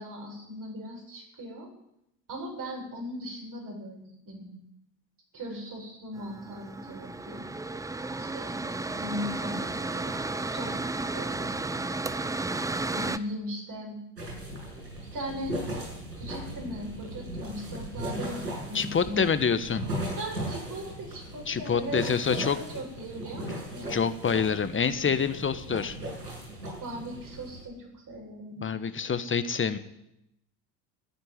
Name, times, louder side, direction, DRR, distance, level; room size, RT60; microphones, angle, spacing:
voice 1, 0.0-1.7 2.3-4.6 5.3-7.4 8.2-8.6 8.9-10.8 11.1-11.5 12.8-14.0 15.1-15.6 16.2-19.6 20.2-24.0 26.8-28.9, equal, 40° right, 0 dB, 8.0 m, -39 dB
Mechanical fan, 6.1-13.2, right 2 dB, 5° right, 0.6 m, -33 dB
sound 1, 14.2-27.6, right 1 dB, 90° right, 7.5 m, -37 dB
voice 2, 18.7-19.8 21.5-22.6 23.9-26.0 28.6-29.8, left 6 dB, 25° left, 12 dB, 1.2 m, -26 dB
14.5 x 9.8 x 9.8 m, 0.83 s
hypercardioid pair, 70°, 49 cm